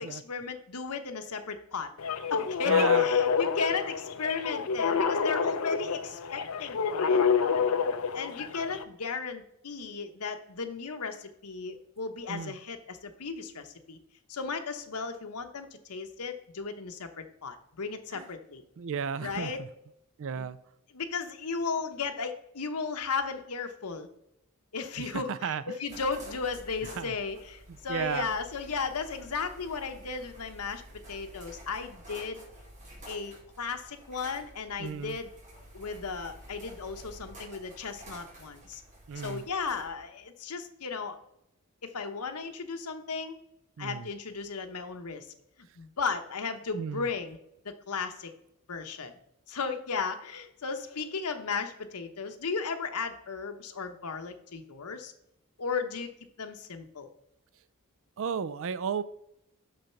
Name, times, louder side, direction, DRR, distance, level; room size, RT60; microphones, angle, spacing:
voice 1, 0.0-1.9 2.3-7.2 8.1-14.0 14.3-18.6 19.2-19.6 20.3-20.5 20.9-24.1 24.7-30.8 31.1-32.4 33.1-35.3 35.7-38.8 39.2-41.2 41.8-43.4 43.8-45.3 45.6-47.4 47.6-48.3 48.7-49.1 49.5-55.1 55.6-56.1 56.4-57.1, left 5 dB, 85° left, 7 dB, 1.0 m, -35 dB
sound 1, 2.0-8.8, left 6 dB, 70° left, 0.6 m, -27 dB
voice 2, 2.7-3.1 12.3-12.5 18.1-18.2 18.8-19.5 20.2-20.6 25.0-25.6 26.9-27.1 27.9-28.3 34.8-35.2 39.1-39.4 43.8-44.1 46.7-47.1 58.2-59.0, right 6 dB, 60° right, 15 dB, 0.4 m, -33 dB
sound 2, 25.9-39.9, right 1 dB, 35° right, 3.5 m, -50 dB
6.5 x 6.4 x 5.8 m, 0.79 s
head